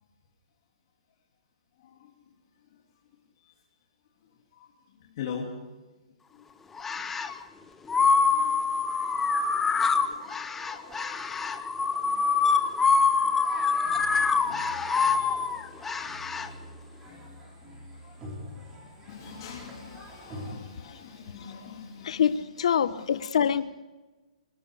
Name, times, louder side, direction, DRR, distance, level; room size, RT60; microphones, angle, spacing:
voice 1, 1.8-2.1 4.6-4.7 5.2-5.5 6.3-6.4 6.9-7.6 7.9-8.7 9.2-10.8 11.1-11.4 12.1-12.2 12.5-12.7 13.1-16.3 16.7-17.2 18.0-18.1 19.0-22.3 22.8-23.3, left 6 dB, 35° left, -1 dB, 2.9 m, -45 dB
Alien Fox Bark, 6.8-7.4 7.9-16.5, left 5 dB, 5° left, 0.7 m, -25 dB
sound 1, 8.2-20.5, equal, 10° right, 5.1 m, -47 dB
voice 2, 22.0-23.6, left 8 dB, 55° left, 13 dB, 1.2 m, -25 dB
27.5 x 19.5 x 5.0 m, 1.2 s
hypercardioid pair, 175°, 4 cm